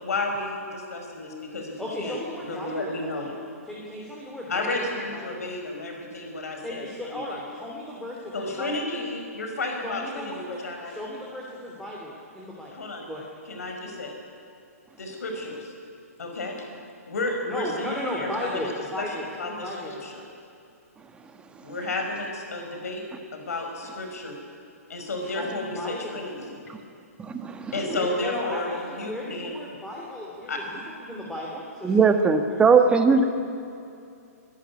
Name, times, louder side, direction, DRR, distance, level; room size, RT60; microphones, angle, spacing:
voice 1, 0.0-2.1 2.4-3.3 4.5-7.4 8.3-10.9 12.7-13.1 13.5-14.1 15.0-15.7 16.2-16.6 17.1-18.7 19.0-20.2 21.6-23.0 23.3-24.4 24.9-26.6 27.7-29.6 30.5-30.6, left 2 dB, 70° left, 3 dB, 5.2 m, -32 dB
voice 2, 1.8-3.3 3.6-5.4 6.6-8.9 9.8-12.7 13.1-13.3 17.4-20.1 23.5-23.6 25.2-26.2 27.8-32.8 33.1-33.2, left 1 dB, 5° left, -4 dB, 3.2 m, -36 dB
voice 3, 27.2-27.7 31.8-33.2, right 5 dB, 10° right, 6 dB, 1.5 m, -19 dB
24.0 x 12.0 x 9.9 m, 2.5 s
hypercardioid pair, 130°, 9 cm